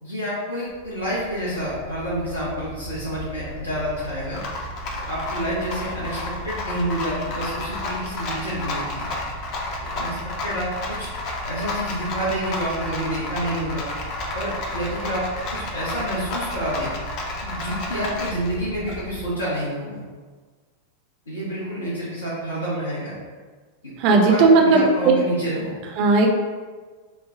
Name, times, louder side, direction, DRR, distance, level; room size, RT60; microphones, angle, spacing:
voice 1, 0.0-4.4 5.1-9.1 9.9-10.2 10.4-11.1 11.4-13.9 14.3-15.2 15.5-16.9 17.4-20.0 21.3-23.1 23.8-25.9, right 1 dB, 75° left, -8 dB, 0.8 m, -28 dB
Rattle, 0.7-19.3, left 1 dB, 40° left, 0.5 m, -32 dB
voice 2, 24.0-24.9 26.0-26.3, right 3 dB, 45° right, 1 dB, 0.5 m, -15 dB
3.2 x 2.1 x 3.6 m, 1.4 s
figure-of-eight pair, 90°, 0 cm